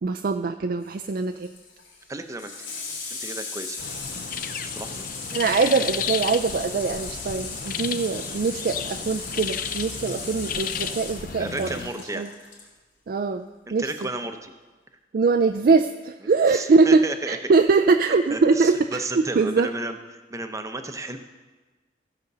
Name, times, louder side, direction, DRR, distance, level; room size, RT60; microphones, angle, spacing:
voice 1, 0.0-1.5 5.3-11.7 12.1-12.3 13.1-13.4 13.7-13.9 15.1-19.7, right 4 dB, 55° right, 7 dB, 0.4 m, -22 dB
Water tap faucet / Sink (filling or washing), 0.8-12.7 14.0-14.1, left 4 dB, 85° left, 3.0 m, -37 dB
voice 2, 2.1-2.5 3.1-3.8 4.8-5.0 11.4-12.3 13.7-14.5 16.2-17.4 18.3-20.0 20.3-21.2, right 2 dB, 15° right, 7 dB, 0.7 m, -33 dB
sound 1, 3.8-11.9, left 7 dB, 50° left, 0.5 m, -33 dB
15.0 x 5.2 x 6.7 m, 1.3 s
head